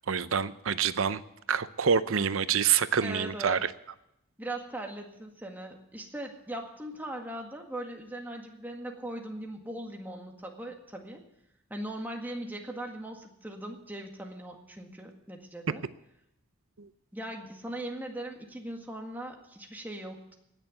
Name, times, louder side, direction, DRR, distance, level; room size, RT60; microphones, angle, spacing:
voice 1, 0.1-1.2 1.5-3.7 16.8-16.9, right 7 dB, 90° right, 14 dB, 0.7 m, -27 dB
voice 2, 3.0-3.6 4.4-11.2 11.7-15.8 17.1-20.4, right 1 dB, 10° right, 2 dB, 1.8 m, -39 dB
17.5 x 6.8 x 9.5 m, 0.83 s
head